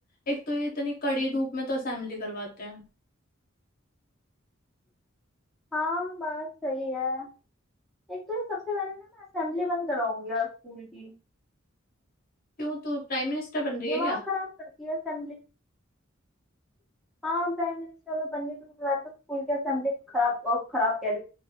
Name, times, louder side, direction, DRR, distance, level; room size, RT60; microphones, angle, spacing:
voice 1, 0.3-2.8 12.6-14.2, equal, 45° left, 0 dB, 0.8 m, -30 dB
voice 2, 5.7-7.3 8.1-11.1 13.8-14.5 14.8-15.4 17.2-19.0 19.3-21.2, left 2 dB, ahead, -4 dB, 0.8 m, -30 dB
2.6 x 2.2 x 2.7 m, 0.33 s
head